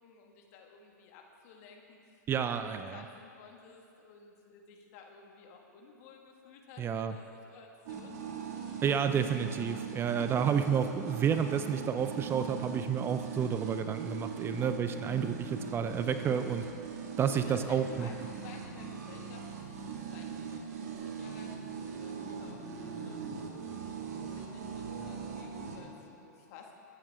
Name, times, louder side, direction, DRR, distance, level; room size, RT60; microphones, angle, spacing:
voice 1, 0.0-8.2 14.4-14.7 17.3-21.6 21.9-26.7, left 5 dB, 55° left, 1 dB, 2.1 m, -54 dB
voice 2, 2.3-3.0 6.8-7.2 8.8-16.6 17.2-18.1, right 7 dB, 25° right, 9 dB, 0.6 m, -30 dB
sound 1, 7.9-25.8, right 6 dB, 60° right, 2.3 m, -41 dB
21.0 x 8.9 x 3.8 m, 2.5 s
hypercardioid pair, 115°, 10 cm